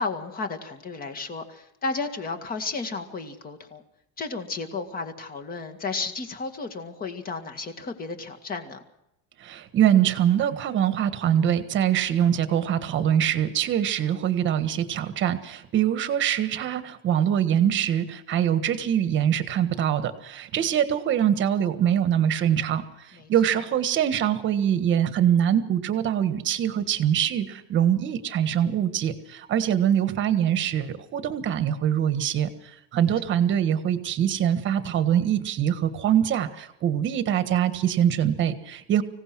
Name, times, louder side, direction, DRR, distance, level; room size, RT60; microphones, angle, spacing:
voice 1, 0.0-3.8 4.2-8.8 20.5-20.6 23.1-23.3, left 3 dB, 20° left, 7 dB, 2.0 m, -33 dB
voice 2, 9.4-39.0, right 10 dB, 30° right, 11 dB, 1.5 m, -23 dB
25.0 x 17.0 x 6.2 m, 0.83 s
cardioid pair, 180°, 39 cm